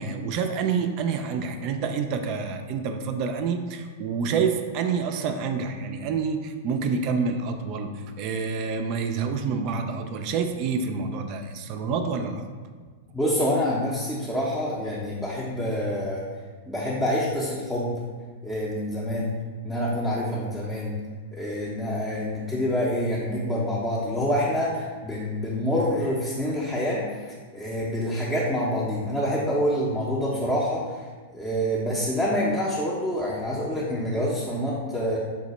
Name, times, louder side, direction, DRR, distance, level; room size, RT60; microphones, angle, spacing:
voice 1, 0.0-12.5, right 5 dB, 45° right, 6 dB, 0.3 m, -28 dB
voice 2, 13.1-16.3 16.7-18.0 18.4-19.3 19.6-20.9 21.3-31.0 31.3-35.2, equal, 5° left, -7 dB, 0.6 m, -27 dB
4.7 x 2.1 x 3.0 m, 1.5 s
hypercardioid pair, 100°, 0 cm